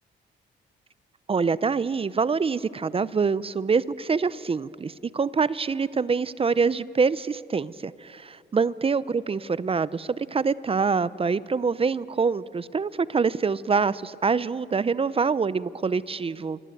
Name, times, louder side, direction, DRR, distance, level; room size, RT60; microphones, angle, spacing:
voice 1, 1.3-16.6, right 5 dB, 30° right, 18 dB, 0.6 m, -25 dB
26.0 x 24.0 x 9.2 m, 2.6 s
cardioid pair, 90°, 20 cm